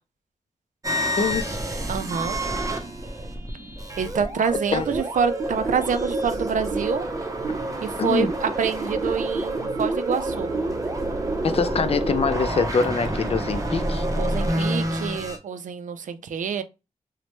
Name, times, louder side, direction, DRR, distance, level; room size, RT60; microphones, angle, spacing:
sound 1, 0.8-15.4, right 1 dB, 25° right, 0.7 m, -28 dB
voice 1, 1.2-1.6 4.7-4.9 8.0-8.3 11.4-14.1, left 5 dB, 50° left, 0.4 m, -24 dB
voice 2, 1.9-2.4 4.0-7.1 7.8-10.5 14.2-16.6, right 7 dB, 85° right, 0.4 m, -27 dB
3.0 x 2.1 x 3.0 m
wide cardioid pair, 80°, 13 cm